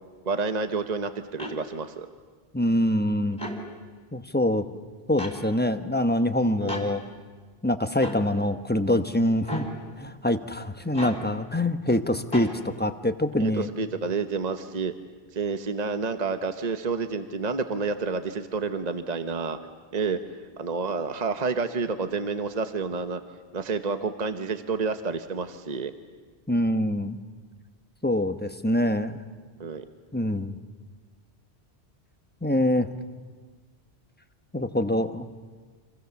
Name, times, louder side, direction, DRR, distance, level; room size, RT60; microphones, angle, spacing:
voice 1, 0.2-2.1 6.6-6.7 13.4-14.9 15.3-19.6 19.9-20.2 20.6-23.2 23.5-25.9 29.6-29.8, right 4 dB, 40° right, 8 dB, 1.1 m, -29 dB
sound 1, 1.4-1.6 3.3-3.6 5.2-5.4 6.7-6.9 8.0-8.2 9.4-9.7 10.9-11.2 12.3-12.5, equal, 30° left, 3.9 m, -33 dB
voice 2, 2.5-3.4 4.1-4.6 5.1-7.0 7.6-9.7 10.0-12.5 12.8-13.7 26.5-27.2 28.0-29.2 30.1-30.6 32.4-32.9 34.5-35.3, left 1 dB, 10° left, 8 dB, 1.0 m, -25 dB
30.0 x 26.5 x 7.1 m, 1.5 s
omnidirectional pair, 1.1 m